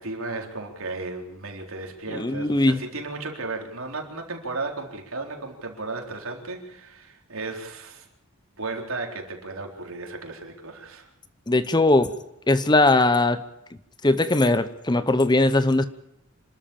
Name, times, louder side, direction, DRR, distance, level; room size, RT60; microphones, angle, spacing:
voice 1, 0.0-8.1 8.6-11.1, right 3 dB, 70° right, 2 dB, 4.0 m, -34 dB
voice 2, 2.1-2.8 11.5-12.1 12.5-13.4 14.0-15.8, left 2 dB, 20° left, 12 dB, 0.8 m, -20 dB
27.0 x 13.0 x 8.7 m, 0.81 s
head